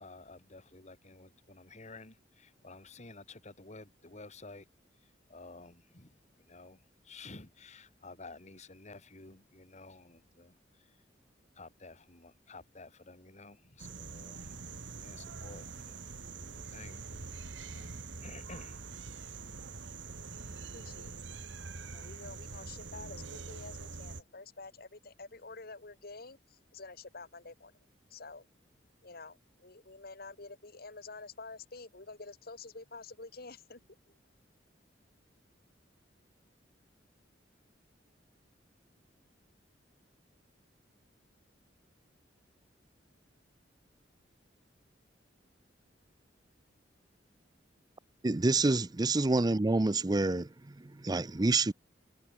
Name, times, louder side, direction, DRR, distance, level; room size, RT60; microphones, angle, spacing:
voice 1, 0.0-4.7 5.3-10.9 11.6-14.5 14.9-17.2 17.7-18.8, left 3 dB, 40° left, 2.2 m, -52 dB
sound 1, 13.8-24.2, right 4 dB, 75° right, 1.8 m, -44 dB
voice 2, 20.7-21.4 21.9-27.7 28.1-28.5 29.0-33.8, left 3 dB, 55° left, 2.6 m, -48 dB
voice 3, 48.2-51.7, right 2 dB, 20° right, 0.5 m, -28 dB
head